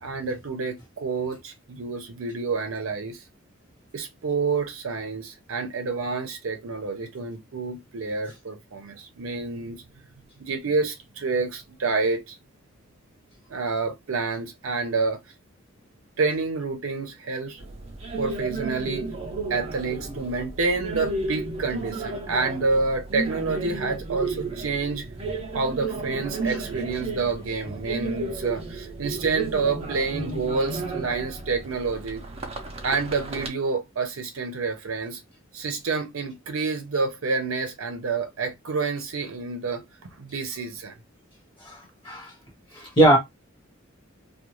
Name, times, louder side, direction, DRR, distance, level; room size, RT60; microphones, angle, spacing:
voice 1, 0.0-3.2 3.9-9.8 10.4-12.4 13.5-15.2 16.2-17.6 18.2-19.1 19.5-25.1 25.5-32.2 32.8-35.2 35.5-39.8 40.2-41.0, right 4 dB, 85° right, 0.6 m, -28 dB
sound 1, 17.6-33.5, right 3 dB, 30° right, 0.5 m, -33 dB
voice 2, 42.7-43.2, right 1 dB, 25° left, 1.0 m, -19 dB
2.4 x 2.2 x 2.9 m
head